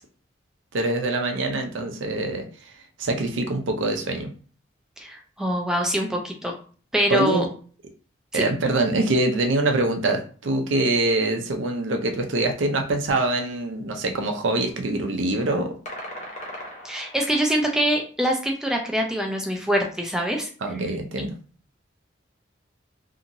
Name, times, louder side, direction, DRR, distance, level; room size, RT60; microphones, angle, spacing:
voice 1, 0.7-2.4 3.0-4.3 7.1-7.5 8.3-15.7 20.6-21.3, right 2 dB, 80° right, 4 dB, 0.5 m, -24 dB
voice 2, 5.0-6.5 6.9-7.4 8.3-8.4 16.8-20.5, equal, 5° right, 1 dB, 0.4 m, -24 dB
sound 1, 15.9-17.6, left 1 dB, 40° left, 0.7 m, -38 dB
2.8 x 2.7 x 2.6 m, 0.41 s
head